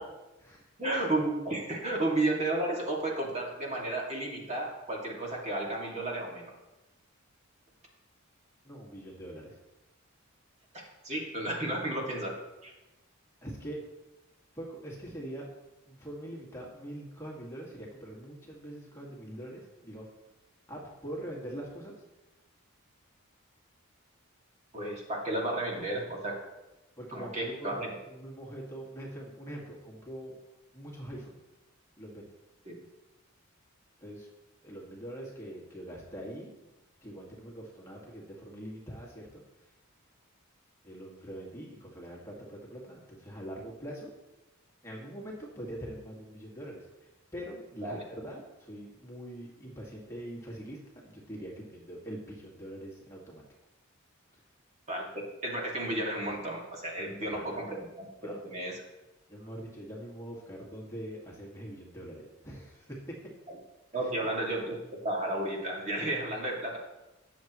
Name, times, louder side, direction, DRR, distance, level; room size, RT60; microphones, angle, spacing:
voice 1, 0.8-6.5 10.7-12.3 12.6-12.7 24.7-26.3 27.1-27.9 32.7-32.8 47.8-48.0 54.9-58.8 63.9-66.8, right 1 dB, 30° right, -2 dB, 2.3 m, -33 dB
voice 2, 8.6-9.6 13.4-13.9 14.5-15.5 15.9-20.1 20.7-21.9 27.0-30.4 30.7-31.4 32.0-32.3 34.0-34.3 34.6-36.5 37.0-39.7 40.8-44.1 44.8-53.4 54.3-54.4 57.0-57.6 58.2-58.4 59.3-63.2 63.9-64.3, right 1 dB, 15° left, -3 dB, 2.0 m, -43 dB
19.0 x 7.4 x 3.1 m, 1.0 s
head